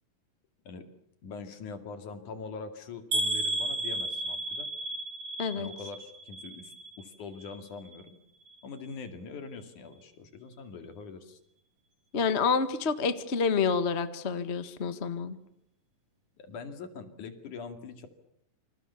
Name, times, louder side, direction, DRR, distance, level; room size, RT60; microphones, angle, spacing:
voice 1, 1.2-4.7 5.6-8.2 8.6-11.4 16.4-18.1, left 5 dB, 65° left, 8 dB, 3.8 m, -43 dB
sound 1, 3.1-7.1 7.4-8.0 8.5-8.6 8.9-9.0, right 1 dB, 40° right, 3.2 m, -33 dB
voice 2, 12.1-15.4, left 5 dB, 40° left, 10 dB, 0.9 m, -28 dB
28.5 x 25.5 x 7.1 m, 0.74 s
omnidirectional pair, 4.0 m